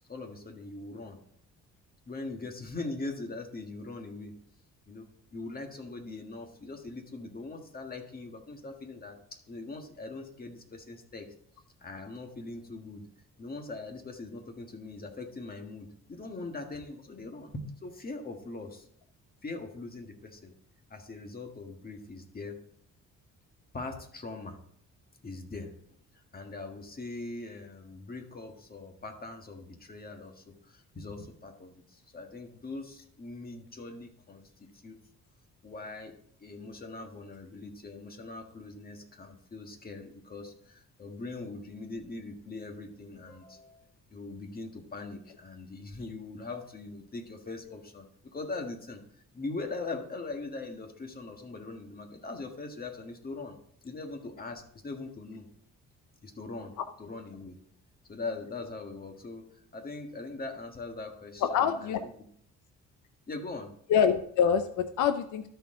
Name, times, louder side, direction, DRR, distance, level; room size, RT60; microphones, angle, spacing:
voice 1, 0.1-1.2 2.1-4.3 4.9-11.3 11.8-13.1 13.4-18.9 19.4-20.5 20.9-22.6 23.7-24.6 25.2-25.7 26.1-35.0 35.6-43.8 44.1-49.0 49.3-53.6 53.8-55.5 56.2-57.6 58.1-62.1 63.3-63.7, left 3 dB, 30° left, 4 dB, 1.6 m, -41 dB
voice 2, 61.4-62.0 63.9-65.4, left 7 dB, 85° left, 9 dB, 0.6 m, -25 dB
12.5 x 4.5 x 3.7 m, 0.65 s
cardioid pair, 90°, 30 cm